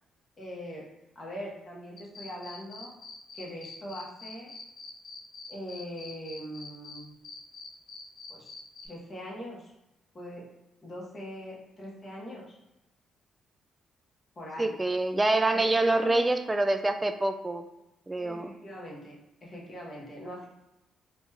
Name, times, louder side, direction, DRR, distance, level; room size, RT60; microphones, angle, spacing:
voice 1, 0.4-0.8 1.1-2.9 3.3-4.5 5.5-7.1 8.3-8.5 8.8-9.7 10.1-10.4 10.8-12.6 14.4-14.7 15.5-16.3 18.2-19.1 19.4-20.5, equal, 35° left, -4 dB, 1.1 m, -41 dB
sound 1, 2.0-7.0 7.2-8.9, left 5 dB, 55° left, 0.6 m, -45 dB
voice 2, 14.6-17.7 18.1-18.5, right 2 dB, 15° right, 8 dB, 0.3 m, -26 dB
3.1 x 2.3 x 3.1 m, 0.93 s
cardioid pair, 90°, 0 cm